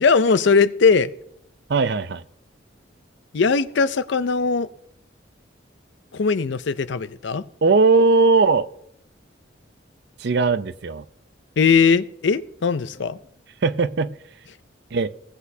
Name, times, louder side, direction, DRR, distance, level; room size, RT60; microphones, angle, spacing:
voice 1, 0.0-1.1 3.3-4.7 6.1-7.4 11.6-13.2, left 5 dB, 65° left, 14 dB, 0.5 m, -19 dB
voice 2, 1.7-2.2 7.6-8.7 10.2-11.0 13.6-14.1 14.9-15.1, right 4 dB, 60° right, 14 dB, 0.5 m, -18 dB
17.5 x 8.1 x 2.7 m, 0.71 s
head